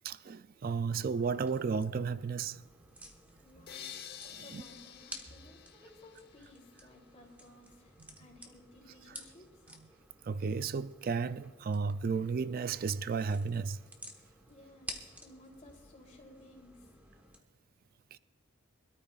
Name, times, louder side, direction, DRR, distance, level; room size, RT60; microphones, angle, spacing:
voice 1, 0.0-2.6 4.2-4.6 10.2-13.8 18.1-18.2, right 5 dB, 40° right, 0.3 m, -33 dB
sound 1, 1.2-17.4, equal, 5° right, 1.2 m, -53 dB
voice 2, 3.4-9.6 14.5-17.0, left 1 dB, 30° left, 3.1 m, -57 dB
sound 2, 3.7-6.7, left 8 dB, 50° left, 1.0 m, -49 dB
24.5 x 13.5 x 2.4 m
head